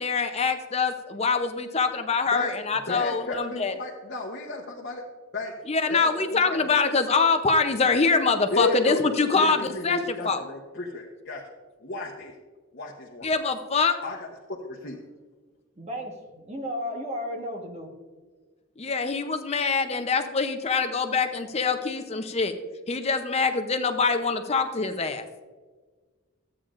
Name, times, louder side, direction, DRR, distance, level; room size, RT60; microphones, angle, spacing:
voice 1, 0.0-3.7 5.7-10.4 13.2-14.0 18.8-22.5 22.9-25.2, left 4 dB, 30° left, 7 dB, 0.6 m, -24 dB
voice 2, 2.9-5.0 5.3-5.5 5.9-6.1 6.4-6.6 8.5-9.0 9.4-11.4 11.8-12.3 12.7-13.3 14.0-15.0, left 2 dB, 50° left, -2 dB, 0.9 m, -32 dB
voice 3, 15.8-17.9, equal, 30° right, 2 dB, 1.2 m, -34 dB
13.0 x 8.6 x 2.5 m, 1.4 s
head